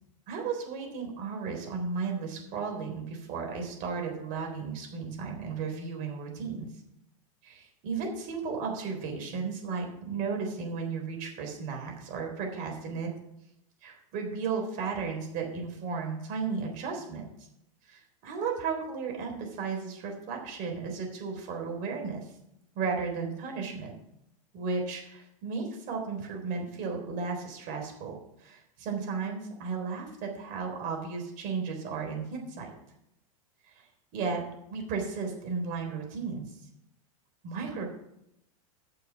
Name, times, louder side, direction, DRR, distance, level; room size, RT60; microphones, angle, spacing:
voice 1, 0.3-6.7 7.4-13.1 13.8-17.5 17.9-22.3 22.8-23.9 24.5-32.7 33.7-33.8 34.1-34.4 34.7-36.5 37.4-37.9, right 5 dB, 50° right, 2 dB, 3.7 m, -34 dB
9.7 x 6.7 x 6.2 m, 0.80 s
hypercardioid pair, 100°, 18 cm